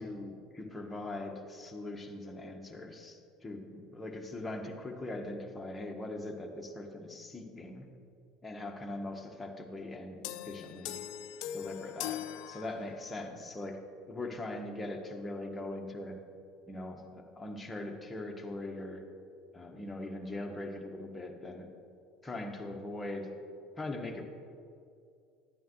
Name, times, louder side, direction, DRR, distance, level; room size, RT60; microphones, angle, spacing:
voice 1, 0.0-7.9 8.4-11.0 11.5-13.8 14.1-16.2 16.7-19.0 19.5-21.7 22.2-23.3 23.8-24.2, left 2 dB, 15° left, 2 dB, 1.4 m, -41 dB
sound 1, 10.2-13.2, left 11 dB, 70° left, 0.4 m, -41 dB
11.5 x 9.2 x 3.2 m, 2.4 s
hypercardioid pair, 80°, 0 cm